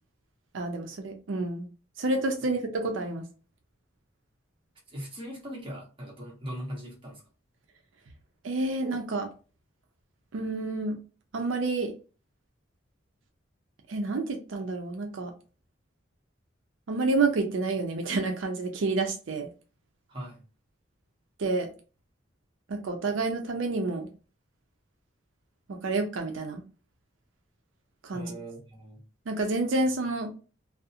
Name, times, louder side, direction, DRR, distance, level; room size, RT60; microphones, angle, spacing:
voice 1, 0.5-1.7 2.0-3.2 8.4-9.3 10.3-11.0 11.3-11.9 13.9-15.3 16.9-19.5 21.4-21.7 22.7-24.1 25.8-26.6 28.0-28.3 29.3-30.3, right 3 dB, 85° right, 0.5 m, -29 dB
voice 2, 4.9-7.2 20.1-20.4 28.1-29.0, equal, 30° right, 0.9 m, -40 dB
2.4 x 2.0 x 2.6 m
head